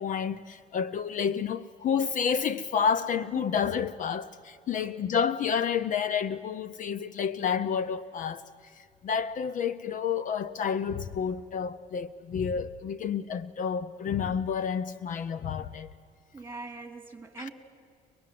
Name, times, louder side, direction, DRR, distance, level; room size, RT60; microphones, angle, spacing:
voice 1, 0.0-15.9 17.4-17.5, left 7 dB, 50° left, 0.6 m, -30 dB
voice 2, 16.3-17.5, right 3 dB, 15° right, 2.6 m, -42 dB
25.0 x 20.0 x 7.6 m
cardioid pair, 110°, 17 cm